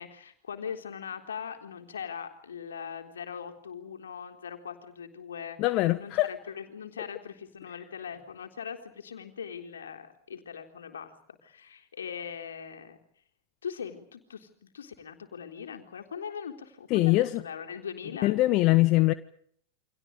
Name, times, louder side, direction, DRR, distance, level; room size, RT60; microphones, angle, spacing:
voice 1, 0.0-13.0 13.6-18.4, left 7 dB, 65° left, 3.8 m, -41 dB
voice 2, 5.6-6.3 16.9-17.4 18.2-19.1, left 18 dB, 40° left, 1.2 m, -23 dB
29.5 x 26.0 x 5.2 m
figure-of-eight pair, 90°, 0 cm